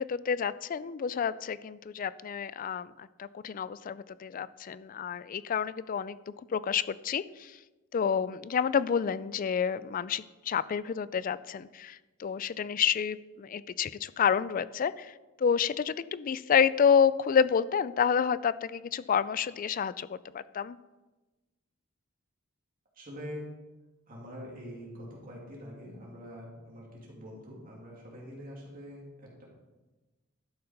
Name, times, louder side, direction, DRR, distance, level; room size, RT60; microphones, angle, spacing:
voice 1, 0.0-6.2 6.5-7.6 7.9-20.8, left 7 dB, 40° left, 17 dB, 0.3 m, -29 dB
voice 2, 22.9-23.5 24.1-29.4, equal, 45° right, -3 dB, 2.9 m, -44 dB
12.0 x 6.9 x 5.2 m, 1.2 s
head